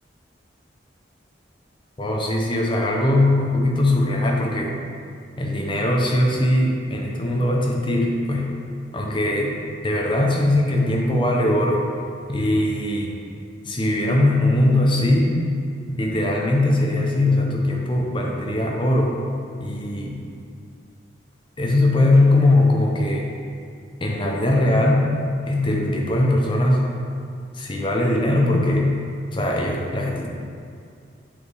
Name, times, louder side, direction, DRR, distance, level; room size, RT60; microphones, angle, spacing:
voice 1, 2.0-4.7 5.4-8.5 8.9-9.5 9.8-11.8 12.3-13.1 13.6-15.4 15.9-19.2 19.6-20.2 21.6-23.3 24.0-25.1 25.5-26.9 27.5-29.0 29.3-30.3, left 1 dB, 25° left, -1 dB, 0.7 m, -20 dB
7.4 x 4.2 x 3.4 m, 2.4 s
head